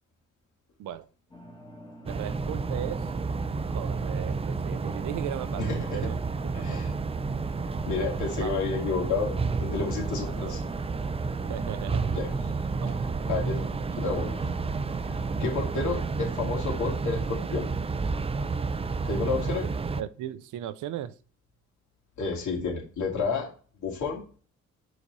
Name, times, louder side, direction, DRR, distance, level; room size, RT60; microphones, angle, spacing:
sound 1, 1.3-16.8, equal, 15° left, 1.5 m, -47 dB
voice 1, 2.0-3.1 3.7-6.2 6.5-6.8 8.4-8.6 10.3-10.6 11.5-12.1 12.8-13.0 20.0-21.2, right 12 dB, 75° right, 0.6 m, -37 dB
sound 2, 2.1-20.0, right 4 dB, 20° right, 0.4 m, -30 dB
voice 2, 5.6-6.0 6.5-6.9 7.8-9.3 9.6-10.6 12.1-12.3 13.3-13.6 14.0-14.4 15.1-17.7 19.0-19.7 22.2-23.5 23.8-24.2, left 4 dB, 75° left, 2.3 m, -30 dB
4.8 x 4.1 x 5.3 m
cardioid pair, 90°, 30 cm